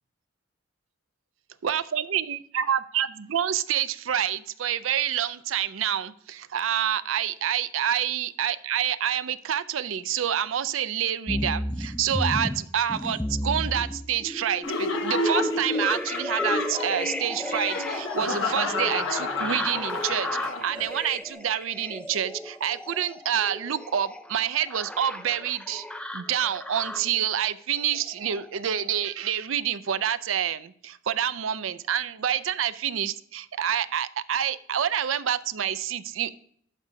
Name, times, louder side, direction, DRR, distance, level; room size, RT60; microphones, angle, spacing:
voice 1, 1.6-25.8 26.1-36.3, right 9 dB, 80° right, 13 dB, 0.5 m, -27 dB
sound 1, 11.3-27.2 27.8-28.5 29.0-29.1, left 1 dB, 5° left, 0.4 m, -34 dB
Laughter, 14.6-21.0, left 3 dB, 80° left, 1.1 m, -30 dB
12.5 x 5.1 x 2.7 m, 0.62 s
head